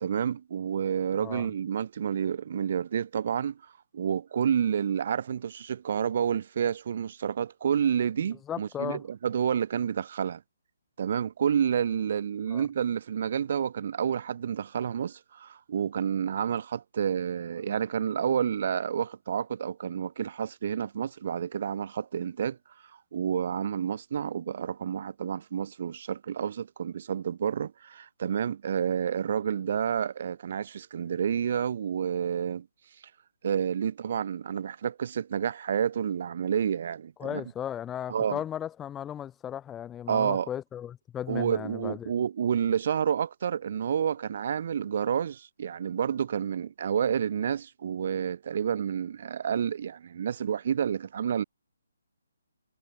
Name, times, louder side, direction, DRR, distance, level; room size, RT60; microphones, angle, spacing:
voice 1, 0.0-3.6 3.9-10.4 11.0-22.6 23.1-32.7 33.4-37.4 38.1-38.4 40.1-40.5 41.3-51.4, right 8 dB, 50° right, 0.8 m, -29 dB
voice 2, 8.5-9.0 12.5-12.6 37.2-42.1, left 10 dB, 15° left, 0.4 m, -36 dB
figure-of-eight pair, 150°, 0 cm